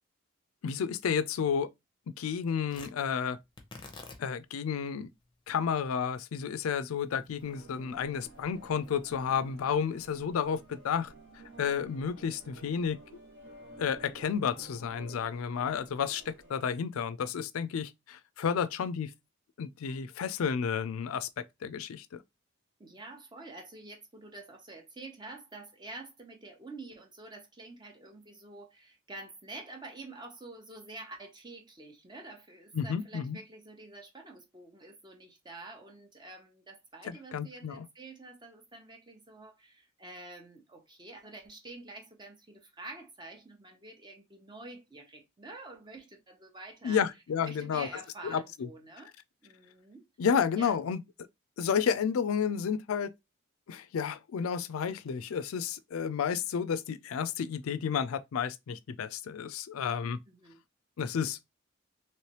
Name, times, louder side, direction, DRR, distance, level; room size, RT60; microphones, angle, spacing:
voice 1, 0.6-1.7 2.2-3.4 4.2-5.1 5.5-11.1 11.6-13.0 13.8-19.1 19.6-22.2 32.7-33.4 37.0-37.8 46.8-47.9 48.2-48.7 50.2-51.0 51.6-53.1 53.7-60.2 61.0-61.4, left 7 dB, 85° left, 0.4 m, -31 dB
Tearing, 2.7-11.0, left 3 dB, 20° left, 0.7 m, -54 dB
sound 1, 7.4-16.6, right 2 dB, 60° right, 1.8 m, -52 dB
voice 2, 22.8-47.0 47.4-49.1 49.4-50.1 50.6-50.8 60.3-60.6, right 2 dB, 20° right, 0.8 m, -48 dB
3.2 x 3.0 x 2.9 m
head